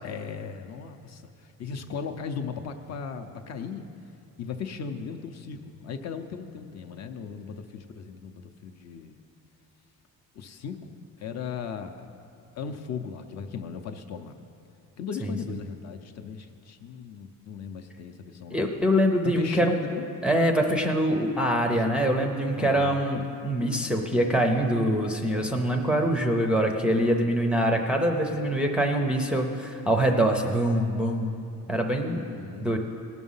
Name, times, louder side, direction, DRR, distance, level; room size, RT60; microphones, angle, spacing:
voice 1, 0.0-3.8 4.4-9.1 10.3-12.1 12.6-14.4 15.0-18.6 19.2-20.1 21.7-22.0 22.5-23.0 32.2-32.8, left 6 dB, 45° left, 6 dB, 0.6 m, -37 dB
voice 2, 18.5-19.8 20.2-31.4 31.7-32.2 32.6-32.8, equal, 5° right, 1 dB, 0.5 m, -24 dB
18.5 x 6.2 x 5.5 m, 2.6 s
cardioid pair, 170°, 36 cm